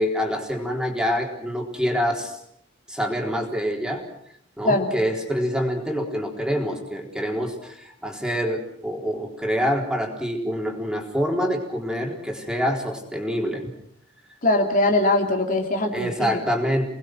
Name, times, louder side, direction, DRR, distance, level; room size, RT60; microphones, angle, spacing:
voice 1, 0.0-2.4 2.9-4.0 4.6-13.7 15.9-16.9, equal, 5° right, 1 dB, 4.0 m, -26 dB
voice 2, 14.4-16.3, left 2 dB, 45° left, 2 dB, 2.9 m, -21 dB
29.5 x 20.5 x 6.3 m, 0.74 s
head